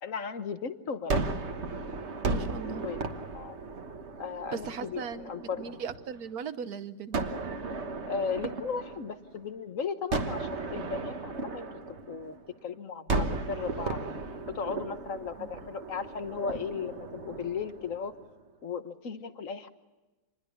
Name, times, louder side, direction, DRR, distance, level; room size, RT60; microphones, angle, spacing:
voice 1, 0.0-1.3 2.8-3.0 3.3-3.6 4.2-5.8 8.0-11.7 12.1-12.3 12.6-14.0 14.5-18.2 18.6-19.7, left 6 dB, 55° left, 10 dB, 1.5 m, -36 dB
Gunshot gunfire, 1.1-6.2 7.1-9.5 10.1-12.6 13.1-18.3, right 3 dB, 45° right, 1.6 m, -35 dB
voice 2, 2.2-2.8 4.5-5.3 5.6-7.2 15.4-15.5, right 6 dB, 65° right, 12 dB, 1.5 m, -38 dB
26.5 x 21.0 x 7.1 m, 1.1 s
omnidirectional pair, 1.8 m